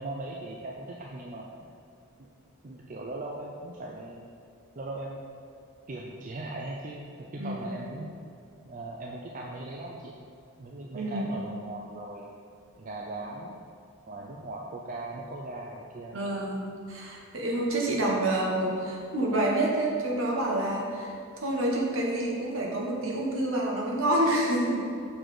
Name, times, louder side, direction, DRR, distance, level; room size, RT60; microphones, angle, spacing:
voice 1, 0.0-1.7 2.2-2.3 2.6-4.2 4.8-5.2 5.9-8.1 8.6-10.1 10.6-12.3 12.8-13.6 14.1-16.2, right 2 dB, 35° right, -1 dB, 0.4 m, -39 dB
voice 2, 7.4-7.7 10.9-11.3 16.1-24.9, right 1 dB, 60° right, -2 dB, 1.1 m, -28 dB
6.1 x 4.0 x 4.9 m, 2.4 s
head